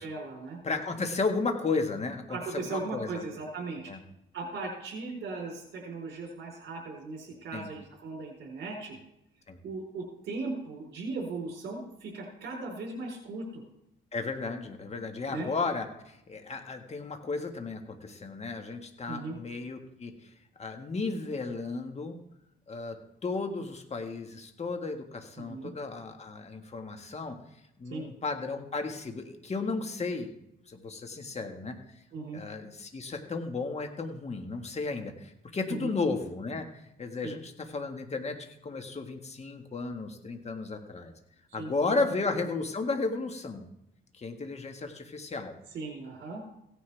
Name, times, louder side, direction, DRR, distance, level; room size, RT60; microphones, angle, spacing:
voice 1, 0.0-0.6 2.3-3.9 4.3-9.0 9.6-13.6 15.3-15.5 19.1-19.4 25.4-25.7 27.9-28.0 32.1-32.4 35.7-35.9 37.2-37.3 41.6-41.7 45.7-46.4, right 3 dB, 65° right, -2 dB, 4.4 m, -38 dB
voice 2, 0.6-3.2 3.9-4.0 7.5-7.7 9.5-9.6 14.1-20.3 20.6-22.2 22.7-27.4 27.8-30.3 30.7-31.8 32.3-41.1 41.5-43.7 44.1-45.5, left 3 dB, 35° left, 5 dB, 1.8 m, -34 dB
16.5 x 10.0 x 3.5 m, 0.81 s
cardioid pair, 90°, 20 cm